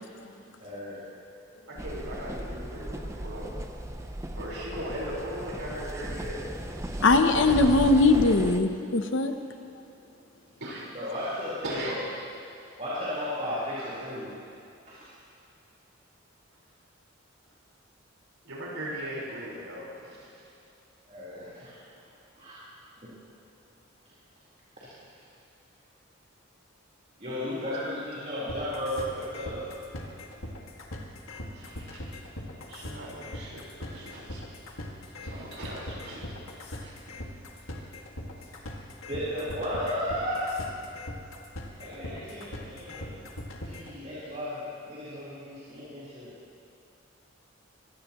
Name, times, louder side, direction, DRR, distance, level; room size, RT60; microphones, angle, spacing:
voice 1, 0.6-1.0 10.9-11.9 12.8-14.4 14.9-15.1 21.1-22.1 22.3-22.5 23.0-23.1 24.8-24.9 27.2-29.7 31.7-31.8 38.8-40.7 41.8-43.2 43.6-46.3, left 1 dB, 35° right, -10 dB, 3.9 m, -35 dB
voice 2, 1.7-3.5 4.3-6.5 10.6-10.9 11.6-12.0 18.4-20.3 27.4-27.5 31.5-32.0 32.6-34.4 35.2-36.4 36.8-36.9 38.4-38.5, right 1 dB, 85° right, -5 dB, 4.5 m, -38 dB
sound 1, 1.8-8.6, right 1 dB, 15° right, 0.7 m, -36 dB
voice 3, 7.0-9.3, left 2 dB, 65° left, 7 dB, 0.8 m, -21 dB
sound 2, 28.5-43.9, left 1 dB, 90° left, 2.0 m, -40 dB
25.0 x 17.0 x 3.0 m, 2.6 s
head